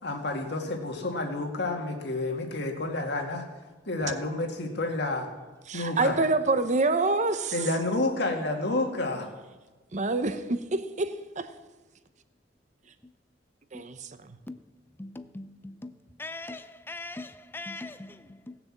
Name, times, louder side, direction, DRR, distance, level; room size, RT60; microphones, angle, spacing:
voice 1, 0.0-3.5 3.9-5.3 5.7-6.3 7.5-9.3, left 2 dB, 65° left, 2.0 m, -30 dB
voice 2, 5.7-7.5 9.9-11.5 13.7-14.1, right 3 dB, 40° right, 0.8 m, -26 dB
voice 3, 15.0-18.6, left 2 dB, 10° left, 0.4 m, -41 dB
17.0 x 6.9 x 7.4 m
head